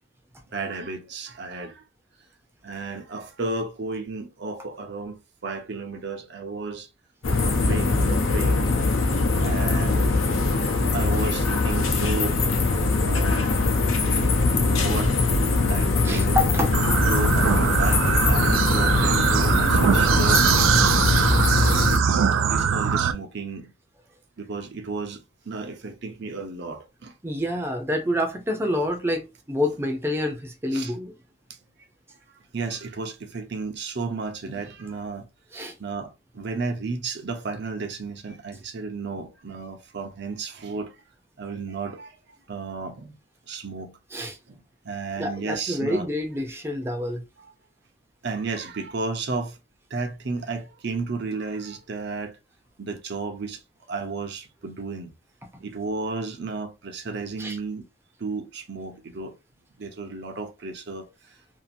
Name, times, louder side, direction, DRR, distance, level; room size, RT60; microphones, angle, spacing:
voice 1, 0.5-1.8 2.6-6.9 7.4-8.7 9.4-10.1 10.9-12.4 13.0-13.4 14.5-15.1 15.7-16.4 17.1-17.5 17.8-20.5 22.4-23.7 24.4-27.1 30.7-30.9 32.5-35.3 35.8-41.0 41.4-42.2 42.5-43.1 43.5-44.0 44.5-46.1 47.4-47.5 48.2-49.6 49.9-52.4 52.8-53.6 53.9-55.1 55.6-57.8 58.2-59.3 59.8-61.4, right 4 dB, 60° right, 0.7 m, -33 dB
sound 1, 7.2-22.0, left 3 dB, 85° left, 0.7 m, -22 dB
voice 2, 16.0-16.7 21.1-21.3 27.2-31.1 35.5-35.7 44.1-44.4 45.2-47.2 57.4-57.6, left 1 dB, 10° right, 0.6 m, -27 dB
sound 2, 16.7-23.1, right 7 dB, 85° right, 0.4 m, -22 dB
2.8 x 2.5 x 2.6 m
head